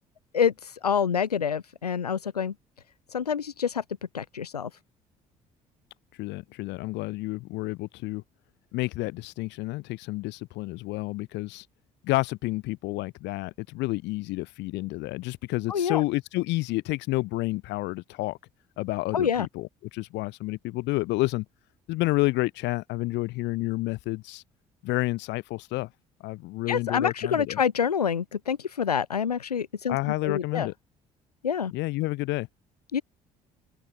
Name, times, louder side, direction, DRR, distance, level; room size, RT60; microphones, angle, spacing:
voice 1, 0.3-2.5 3.1-3.8 4.1-4.7 15.7-16.0 19.1-19.5 26.7-30.0 30.2-30.7 31.4-31.7 32.9-33.0, left 7 dB, 85° left, 5.0 m, -27 dB
voice 2, 6.2-8.2 8.7-11.6 12.0-18.4 18.8-21.4 21.9-24.4 24.8-25.9 26.2-27.6 29.9-30.7 31.7-32.5, left 20 dB, 65° left, 7.9 m, -30 dB
open air
figure-of-eight pair, 50°, 19 cm